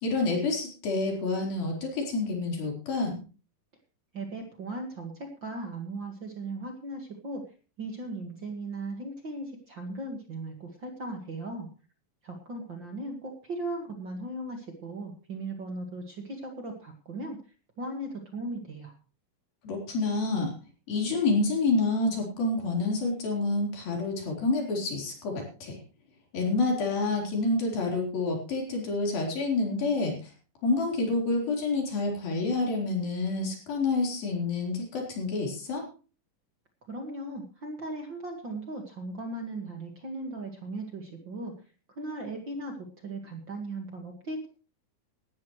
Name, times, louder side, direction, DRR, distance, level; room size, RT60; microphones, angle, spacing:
voice 1, 0.0-3.2 19.6-20.5 20.9-25.8 26.3-30.3 30.6-35.8, left 3 dB, 80° left, 0 dB, 6.0 m, -28 dB
voice 2, 4.1-7.4 7.8-11.7 12.2-17.4 17.8-18.9 36.9-41.5 41.9-44.5, right 2 dB, 40° right, 3 dB, 2.0 m, -37 dB
18.0 x 13.0 x 3.2 m, 0.35 s
omnidirectional pair, 4.1 m